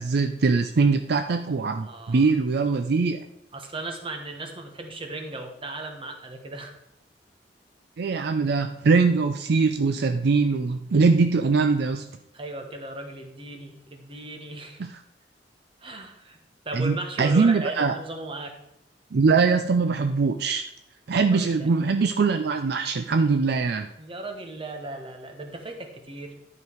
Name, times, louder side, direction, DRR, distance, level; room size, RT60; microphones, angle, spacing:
voice 1, 0.0-3.2 8.0-12.1 14.8-15.0 16.7-18.0 19.1-20.6 21.1-23.9, right 4 dB, 65° right, 7 dB, 0.5 m, -22 dB
voice 2, 1.8-2.2 3.5-6.7 12.3-14.8 15.8-16.4 16.6-18.5 21.2-21.7 24.0-26.3, right 2 dB, 30° right, 4 dB, 1.4 m, -37 dB
11.0 x 5.3 x 4.6 m, 0.82 s
head